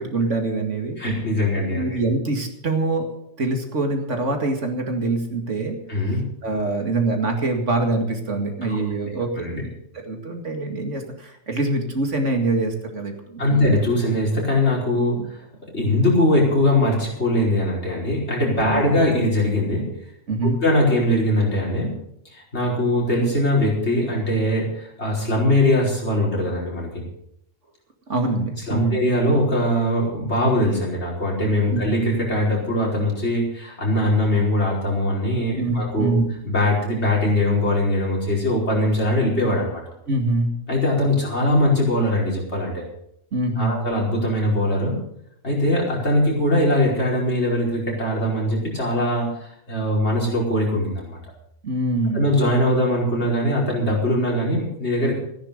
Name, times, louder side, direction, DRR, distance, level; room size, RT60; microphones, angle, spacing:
voice 1, 0.0-1.0 1.7-3.1 3.4-5.8 6.4-9.7 9.9-13.6 15.2-15.3 18.6-18.9 20.3-20.6 28.1-29.0 31.7-31.8 35.6-36.3 40.1-40.5 43.3-43.8 51.6-52.3, right 2 dB, 65° right, 4 dB, 2.4 m, -24 dB
voice 2, 1.0-2.0 5.9-6.3 8.7-8.8 9.0-9.6 13.4-15.4 15.7-19.9 20.6-21.9 22.3-27.0 28.7-36.1 36.5-39.8 40.7-42.8 43.6-45.0 45.4-51.2 52.1-55.1, left 1 dB, 55° left, -3 dB, 5.2 m, -21 dB
14.5 x 10.5 x 6.7 m, 0.76 s
omnidirectional pair, 1.3 m